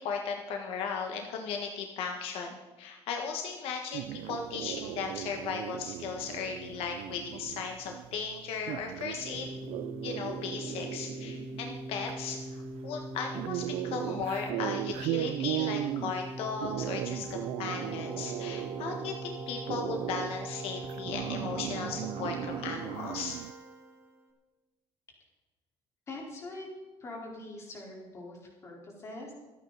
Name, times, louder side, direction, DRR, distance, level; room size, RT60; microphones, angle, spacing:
voice 1, 0.0-9.5 10.0-23.4, left 5 dB, 70° left, 3 dB, 1.6 m, -36 dB
sound 1, 3.9-23.5, right 16 dB, 80° right, 0.4 m, -38 dB
Keyboard (musical), 9.2-24.2, right 2 dB, 30° right, 3.5 m, -41 dB
voice 2, 26.1-26.7 27.0-29.3, left 2 dB, 30° left, -2 dB, 4.4 m, -43 dB
25.0 x 9.2 x 4.2 m, 1.2 s
cardioid pair, 180°, 10 cm